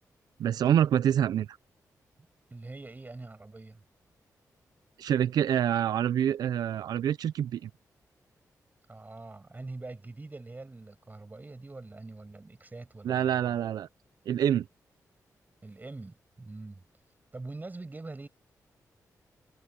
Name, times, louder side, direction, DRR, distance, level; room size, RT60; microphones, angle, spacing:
voice 1, 0.4-1.6 5.0-7.7 13.0-13.9 14.3-14.7, right 10 dB, 85° right, 0.5 m, -26 dB
voice 2, 2.5-3.8 8.9-13.6 15.6-16.8 17.3-18.3, right 2 dB, 25° right, 5.9 m, -44 dB
cardioid pair, 70°, 7 cm